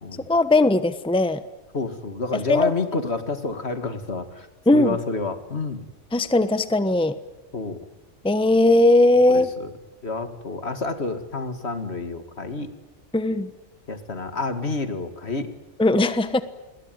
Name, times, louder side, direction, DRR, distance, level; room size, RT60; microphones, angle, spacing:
voice 1, 0.3-1.4 2.3-2.7 4.7-5.0 6.1-7.1 8.2-9.5 13.1-13.5 15.8-16.4, left 2 dB, 5° left, 12 dB, 1.0 m, -18 dB
voice 2, 1.7-4.5 4.7-5.8 7.5-7.8 9.3-9.7 10.0-12.7 13.9-15.5, left 3 dB, 60° left, 8 dB, 2.5 m, -29 dB
28.0 x 22.5 x 9.4 m, 1.0 s
omnidirectional pair, 1.2 m